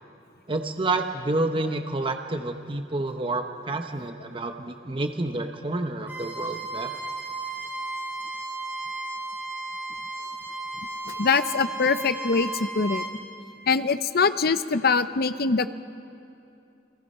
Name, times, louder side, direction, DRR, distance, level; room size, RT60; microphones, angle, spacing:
voice 1, 0.5-7.0, right 2 dB, 30° right, 5 dB, 0.9 m, -29 dB
Bowed string instrument, 6.0-13.1, right 2 dB, 10° right, 4.8 m, -34 dB
voice 2, 11.1-13.0 13.7-15.7, left 4 dB, 60° left, 12 dB, 0.7 m, -23 dB
30.0 x 22.0 x 5.5 m, 2.7 s
head